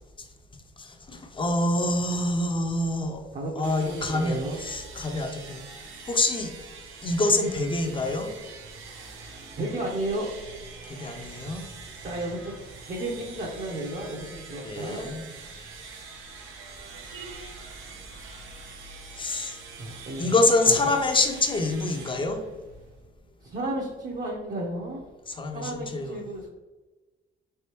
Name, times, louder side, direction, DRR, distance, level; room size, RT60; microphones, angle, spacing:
voice 1, 0.8-3.2 3.5-5.6 6.1-6.5 7.0-8.3 10.9-11.6 14.6-15.3 19.2-19.6 20.2-22.4 25.3-26.2, left 2 dB, 25° left, 5 dB, 0.6 m, -26 dB
voice 2, 3.3-4.6 8.9-9.1 9.6-10.3 12.0-12.5 12.9-15.1 19.8-20.2 20.7-20.8 23.4-25.1 25.5-26.5, right 1 dB, 40° right, -2 dB, 0.8 m, -33 dB
sound 1, 3.6-23.1, right 4 dB, 85° right, 0.7 m, -44 dB
3.8 x 3.4 x 2.9 m, 1.2 s
cardioid pair, 90°, 20 cm